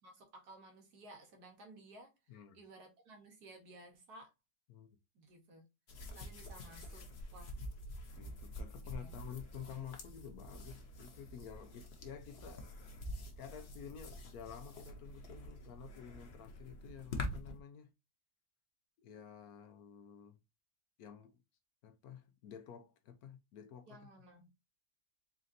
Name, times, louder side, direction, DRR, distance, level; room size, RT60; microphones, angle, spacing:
voice 1, 0.0-2.1 2.5-4.3 5.2-5.7 6.1-7.6 8.9-9.1 23.9-24.5, right 2 dB, 90° right, 1.9 m, -56 dB
voice 2, 2.3-2.6 4.7-4.9 6.4-6.5 8.2-13.0 13.4-17.9 19.0-20.4 21.0-21.4 21.8-24.1, left 8 dB, 75° left, 1.1 m, -51 dB
sound 1, 5.9-17.6, left 1 dB, 50° left, 0.9 m, -47 dB
4.2 x 3.8 x 2.6 m
omnidirectional pair, 1.6 m